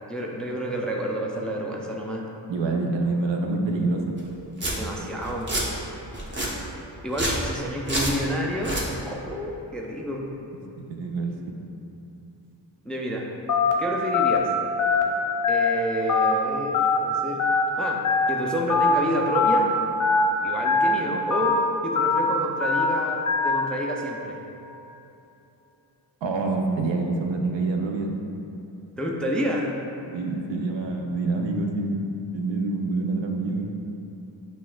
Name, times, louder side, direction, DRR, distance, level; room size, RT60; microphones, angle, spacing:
voice 1, 0.1-2.3 4.8-5.5 7.0-8.8 9.0-10.2 12.8-13.3 13.8-14.5 15.5-17.4 17.8-18.0 18.3-19.7 20.4-24.4 29.0-29.7, equal, ahead, -1 dB, 0.3 m, -29 dB
voice 2, 2.5-4.1 10.9-11.6 26.2-28.1 30.1-32.1 32.3-33.7, right 3 dB, 75° right, 2 dB, 0.6 m, -26 dB
Domestic sounds home sounds, 4.2-4.3 4.6-4.7 5.2-5.6 6.1-6.5 7.1-7.4 7.9-8.1 8.5-8.8, right 1 dB, 25° right, 0.8 m, -27 dB
Telephone, 13.5-13.7 14.1-14.4 14.8-15.0 15.4-15.7 16.1-16.3 16.7-17.0 17.4-17.6 18.0-18.3 18.7-18.9 19.3-19.6 20.0-20.2 20.6-20.9 21.3-21.5 22.0-22.2 22.6-22.8 23.3-23.5, left 5 dB, 45° left, 0.6 m, -21 dB
5.8 x 2.5 x 2.2 m, 3.0 s
cardioid pair, 55°, 45 cm